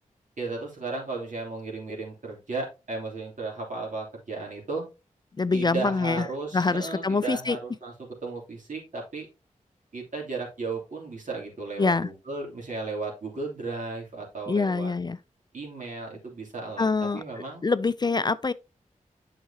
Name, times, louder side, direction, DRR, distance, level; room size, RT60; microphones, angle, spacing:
voice 1, 0.4-4.8 5.5-9.3 9.9-14.9 15.5-17.6, right 3 dB, 70° right, 3.1 m, -35 dB
voice 2, 5.4-6.3 6.5-7.6 11.8-12.1 14.5-15.2 16.8-17.2 17.6-18.5, left 4 dB, 30° left, 0.4 m, -25 dB
8.2 x 5.8 x 2.8 m
cardioid pair, 45°, 14 cm